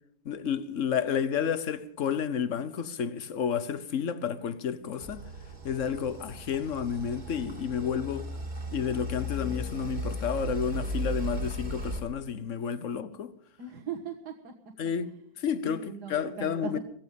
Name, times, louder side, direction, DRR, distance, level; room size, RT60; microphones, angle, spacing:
voice 1, 0.2-5.2 5.6-8.3 8.7-13.3 14.8-15.1 15.4-16.8, left 7 dB, 50° left, 1.2 m, -31 dB
sound 1, 5.0-12.0, right 1 dB, 25° right, 2.1 m, -36 dB
voice 2, 13.6-14.5 15.6-16.8, right 7 dB, 60° right, 2.0 m, -39 dB
17.5 x 15.0 x 5.3 m
omnidirectional pair, 2.0 m